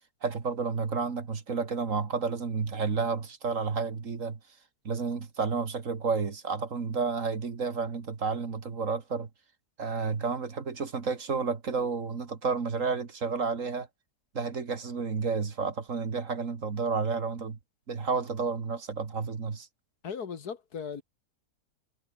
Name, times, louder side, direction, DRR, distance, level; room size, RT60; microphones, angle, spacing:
voice 1, 0.2-4.4 4.9-9.3 9.8-13.9 14.3-17.6 17.9-19.7, right 5 dB, 50° right, 2.2 m, -31 dB
voice 2, 20.0-21.0, left 6 dB, 70° left, 2.2 m, -37 dB
omnidirectional pair, 1.7 m